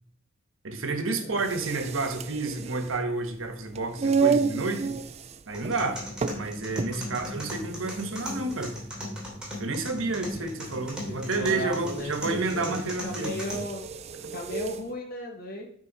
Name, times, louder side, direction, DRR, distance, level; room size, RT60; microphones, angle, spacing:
voice 1, 0.6-5.0 5.5-6.0 6.3-8.9 9.6-13.3 14.2-14.3, right 3 dB, 75° right, 6 dB, 1.3 m, -30 dB
sound 1, 1.3-14.9, right 5 dB, 30° right, 0.4 m, -33 dB
sound 2, 5.5-13.5, left 1 dB, 5° right, 2.7 m, -38 dB
voice 2, 6.8-7.2 10.0-10.5 11.0-12.8 13.0-13.9 14.3-15.7, equal, 45° left, 0 dB, 1.5 m, -36 dB
8.9 x 4.6 x 5.4 m, 0.65 s
head